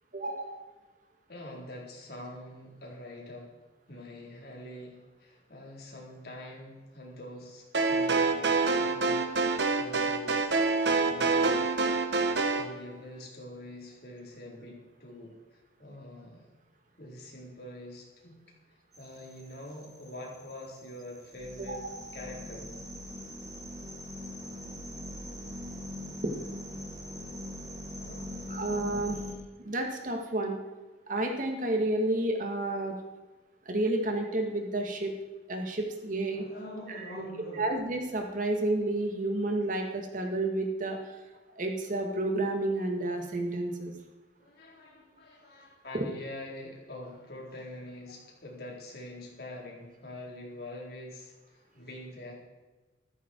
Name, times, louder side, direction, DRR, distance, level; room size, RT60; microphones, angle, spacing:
voice 1, 0.1-0.5 21.7-21.9 28.5-29.2 29.6-30.6 31.1-32.9 33.7-35.1 35.5-36.4 36.9-37.0 37.6-41.0 41.6-43.9, right 2 dB, 50° right, 2 dB, 2.1 m, -30 dB
voice 2, 1.3-3.5 3.9-10.7 11.1-11.7 12.6-15.3 15.8-16.5 17.0-18.4 19.0-21.9 22.1-22.7 27.9-28.6 36.3-37.7 44.4-52.3, left 1 dB, 60° left, -2 dB, 4.5 m, -45 dB
sound 1, 7.7-12.7, right 3 dB, 80° right, 1.4 m, -26 dB
sound 2, 18.9-29.4, left 1 dB, 20° right, 2.0 m, -42 dB
14.0 x 14.0 x 4.8 m, 1.2 s
head